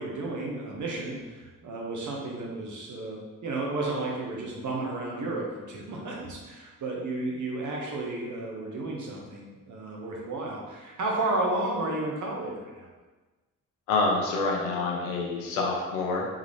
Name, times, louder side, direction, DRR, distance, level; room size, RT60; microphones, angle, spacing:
voice 1, 0.0-12.9, right 2 dB, 40° right, -2 dB, 1.2 m, -32 dB
voice 2, 13.9-16.3, left 3 dB, 70° left, -1 dB, 0.9 m, -27 dB
3.7 x 3.7 x 3.2 m, 1.2 s
figure-of-eight pair, 40°, 44 cm